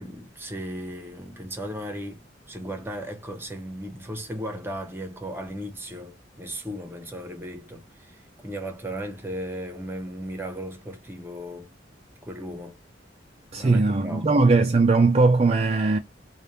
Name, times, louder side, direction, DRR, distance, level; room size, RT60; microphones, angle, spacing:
voice 1, 0.0-8.2 8.4-11.7 12.2-12.8 13.6-14.3, equal, 15° right, 0.9 m, -36 dB
voice 2, 13.5-16.0, right 3 dB, 35° right, 0.4 m, -19 dB
3.4 x 2.4 x 4.1 m
head